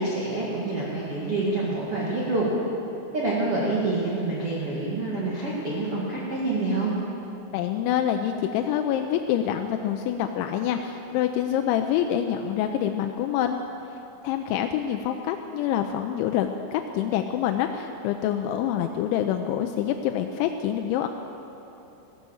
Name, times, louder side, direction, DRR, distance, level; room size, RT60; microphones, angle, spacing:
voice 1, 0.0-2.5 3.1-6.9, right 2 dB, 65° right, -6 dB, 1.4 m, -27 dB
voice 2, 7.5-13.6 14.2-21.1, left 10 dB, 85° left, 5 dB, 2.8 m, -26 dB
15.0 x 11.5 x 7.1 m, 3.0 s
omnidirectional pair, 5.5 m